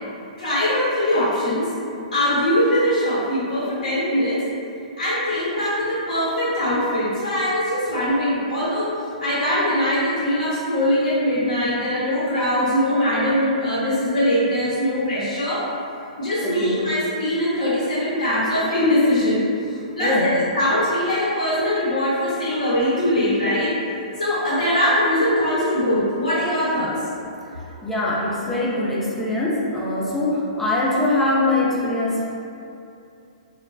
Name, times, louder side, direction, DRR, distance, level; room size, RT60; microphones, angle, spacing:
voice 1, 0.4-1.7 2.1-4.4 5.0-8.9 9.2-15.6 16.2-19.5 19.9-23.7 24.2-26.9, left 1 dB, 75° left, -9 dB, 0.7 m, -21 dB
voice 2, 16.4-16.9 20.0-20.4 24.1-24.3 27.4-32.2, left 2 dB, 5° left, -7 dB, 0.4 m, -23 dB
3.0 x 2.1 x 2.5 m, 2.6 s
hypercardioid pair, 125°, 4 cm